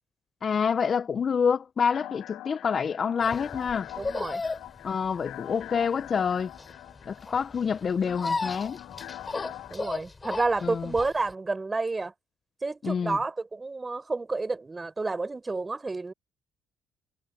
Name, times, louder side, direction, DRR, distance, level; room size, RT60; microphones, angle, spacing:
voice 1, 0.4-3.9 4.8-6.5 7.1-8.8 10.6-10.9 12.8-13.2, left 6 dB, 45° left, 0.8 m, -27 dB
sound 1, 1.9-9.7, left 14 dB, 80° left, 4.5 m, -44 dB
sound 2, 3.2-11.3, left 3 dB, 30° left, 3.5 m, -35 dB
voice 2, 4.0-4.4 9.7-12.1 12.6-16.1, right 3 dB, 25° right, 4.6 m, -30 dB
supercardioid pair, 70°, 0 cm